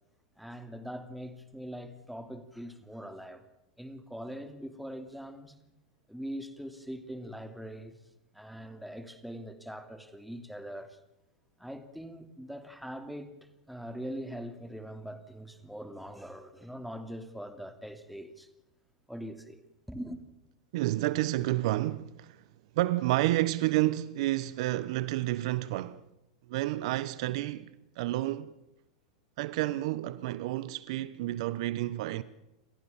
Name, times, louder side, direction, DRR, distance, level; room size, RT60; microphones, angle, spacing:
voice 1, 0.4-3.4 3.8-5.5 6.1-8.0 8.3-11.0 11.6-13.3 13.7-18.5 19.1-19.6 19.9-20.2, equal, ahead, 2.8 m, -42 dB
voice 2, 20.7-22.4 22.7-26.0 26.5-28.5 29.4-32.2, right 16 dB, 65° right, 1.0 m, -30 dB
28.5 x 14.5 x 7.3 m
hypercardioid pair, 105°, 4 cm